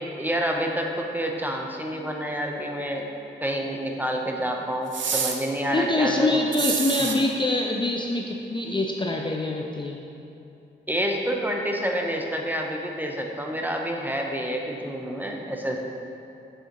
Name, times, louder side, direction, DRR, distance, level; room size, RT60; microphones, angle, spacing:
voice 1, 0.2-3.1 3.4-6.4 10.9-15.8, equal, 10° right, 1 dB, 0.7 m, -28 dB
sound 1, 4.9-5.4 6.5-7.2, right 6 dB, 70° right, 0.6 m, -27 dB
voice 2, 5.7-10.0, left 2 dB, 25° left, 0 dB, 0.4 m, -25 dB
7.2 x 5.5 x 2.9 m, 2.7 s
cardioid pair, 65°, 20 cm